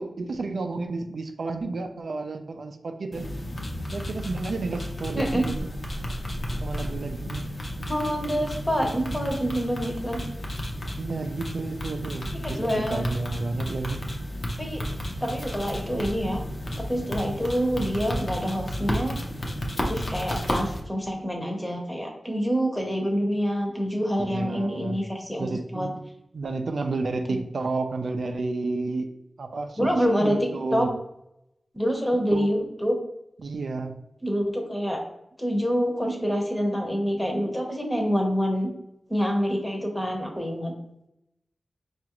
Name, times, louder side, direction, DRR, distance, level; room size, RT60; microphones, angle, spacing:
voice 1, 0.0-3.3 3.9-5.5 6.6-7.5 11.0-14.0 24.2-25.0 25.4-26.0 26.3-29.1 29.4-29.9 30.2-30.9 32.3-32.5 33.4-33.9, right 3 dB, 70° right, 5 dB, 0.3 m, -31 dB
sound 1, 3.1-20.8, equal, 45° left, 0.6 m, -32 dB
voice 2, 7.9-10.2 12.4-13.0 14.6-14.8 15.2-16.4 16.9-19.2 19.8-25.9 27.3-27.4 29.8-30.9 31.7-33.0 34.2-35.0 35.4-38.7 39.1-40.7, equal, 10° left, 1 dB, 0.8 m, -26 dB
4.8 x 2.4 x 2.9 m, 0.82 s
wide cardioid pair, 105°, 0 cm